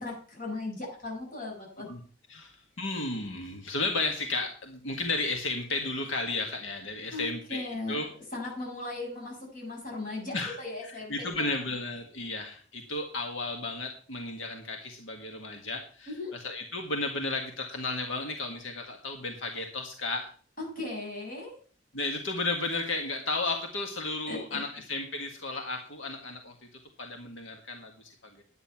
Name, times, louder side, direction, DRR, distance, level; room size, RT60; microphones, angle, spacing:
voice 1, 0.0-1.9 7.1-11.5 16.1-16.3 20.6-21.5 24.3-24.6, left 2 dB, 45° left, -2 dB, 7.5 m, -37 dB
voice 2, 2.3-8.1 10.3-10.6 10.9-16.1 16.4-20.2 21.9-26.5 27.0-28.1, left 3 dB, 90° left, 3 dB, 1.8 m, -33 dB
11.0 x 9.4 x 5.9 m, 0.41 s
head